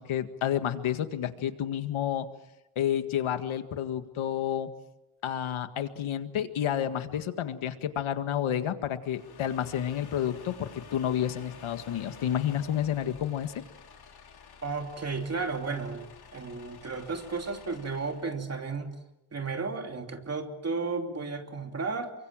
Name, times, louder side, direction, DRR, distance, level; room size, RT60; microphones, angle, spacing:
voice 1, 0.0-2.3 2.8-4.7 5.2-13.5, left 10 dB, 75° left, 9 dB, 1.9 m, -30 dB
sound 1, 9.0-18.4, left 6 dB, 50° left, 4.3 m, -50 dB
voice 2, 14.6-18.9 19.3-22.1, right 4 dB, 30° right, 4 dB, 2.9 m, -33 dB
28.5 x 24.5 x 7.5 m, 0.93 s
wide cardioid pair, 175°, 49 cm